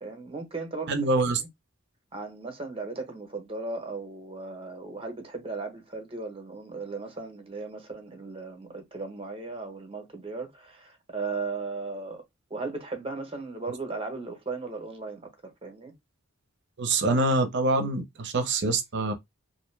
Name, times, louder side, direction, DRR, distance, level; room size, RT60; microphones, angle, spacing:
voice 1, 0.0-1.0 1.4-1.5 2.1-12.2 12.5-15.9, right 3 dB, 30° right, 0.9 m, -36 dB
voice 2, 0.9-1.4 16.8-19.1, right 2 dB, 60° right, 0.6 m, -25 dB
2.6 x 2.1 x 3.2 m
head